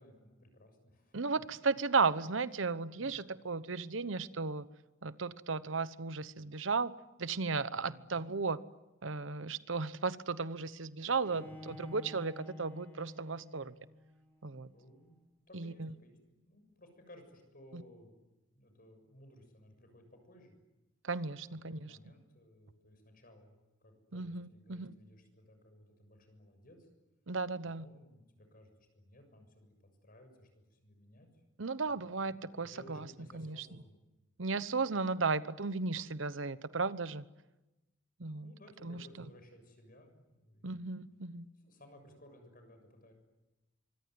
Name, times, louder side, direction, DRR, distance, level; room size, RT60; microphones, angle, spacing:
voice 1, 0.0-1.2 3.0-3.3 7.8-8.1 11.3-12.0 14.7-15.2 15.5-16.2 16.4-18.2 18.5-20.5 21.7-26.9 27.8-29.7 30.0-31.3 31.7-31.8 32.2-34.0 38.4-40.7 41.6-43.1, equal, 50° left, 7 dB, 7.1 m, -59 dB
voice 2, 1.1-4.7 5.0-6.9 7.2-8.6 9.0-13.8 14.4-14.7 15.5-15.9 17.7-17.8 21.0-21.9 24.1-24.9 27.3-27.9 31.6-33.7 34.4-37.3 38.2-38.5 38.8-39.1 40.6-41.5, right 4 dB, 90° right, 15 dB, 1.0 m, -35 dB
Bowed string instrument, 11.2-14.2, left 2 dB, 10° left, 5.1 m, -50 dB
25.0 x 24.5 x 9.6 m, 1.0 s
head